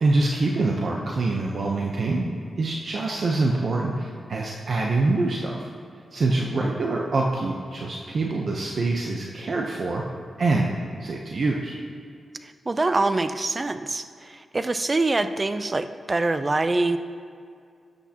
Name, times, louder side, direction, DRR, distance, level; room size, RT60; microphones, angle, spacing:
voice 1, 0.0-2.3 2.6-5.6 6.1-10.0 10.4-10.7 11.0-11.8, right 2 dB, 60° right, -1 dB, 0.8 m, -25 dB
voice 2, 12.4-17.0, right 2 dB, 30° right, 10 dB, 0.5 m, -25 dB
13.0 x 8.2 x 2.9 m, 2.3 s
cardioid pair, 90°, 0 cm